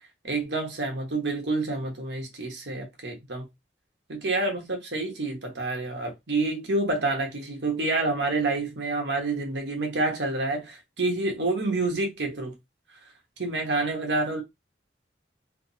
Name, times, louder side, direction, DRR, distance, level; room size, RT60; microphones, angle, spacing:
voice 1, 0.2-3.5 4.1-12.5 13.4-14.4, right 2 dB, 75° right, 1.2 m, -28 dB
3.4 x 2.0 x 4.0 m
head